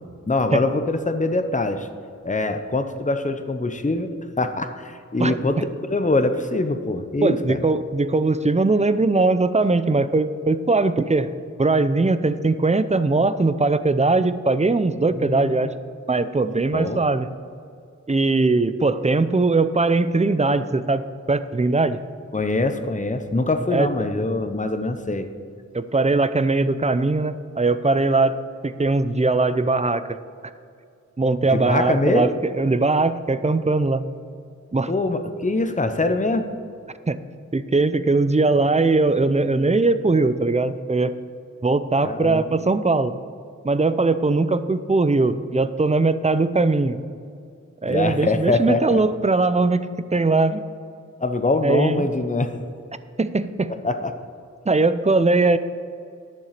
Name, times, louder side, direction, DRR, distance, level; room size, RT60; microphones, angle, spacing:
voice 1, 0.3-1.9 2.2-7.6 15.2-15.5 16.7-17.0 22.3-25.3 31.5-32.3 34.9-36.4 42.0-42.6 47.8-49.0 51.2-52.5 53.8-54.1, left 2 dB, 25° left, 8 dB, 0.8 m, -23 dB
voice 2, 5.2-5.7 7.2-11.3 11.6-15.7 16.1-17.3 18.1-21.0 21.3-22.0 23.7-23.9 25.7-28.4 28.6-30.2 31.2-34.0 34.7-34.9 37.1-37.2 37.5-41.1 41.6-43.1 43.6-47.0 47.8-50.6 51.6-52.1 53.2-53.7 54.7-55.6, right 3 dB, 25° right, 12 dB, 0.6 m, -20 dB
11.0 x 7.2 x 6.7 m, 2.4 s
wide cardioid pair, 50°, 30 cm